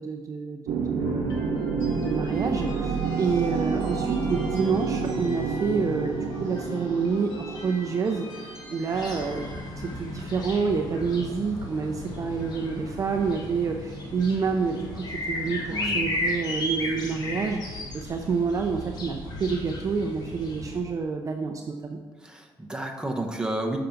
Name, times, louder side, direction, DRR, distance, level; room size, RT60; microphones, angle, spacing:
voice 1, 0.0-9.4 9.8-22.0, right 5 dB, 35° right, 3 dB, 0.5 m, -28 dB
sound 1, 0.7-9.2, right 5 dB, 85° right, 0.8 m, -29 dB
sound 2, 1.0-17.2, left 1 dB, 90° left, 2.2 m, -45 dB
sound 3, 8.9-20.8, left 1 dB, 50° left, 1.3 m, -34 dB
voice 2, 15.7-16.1 22.2-23.8, right 1 dB, 10° right, 2 dB, 0.8 m, -31 dB
6.8 x 5.7 x 3.8 m, 1.4 s
cardioid pair, 110°, 9 cm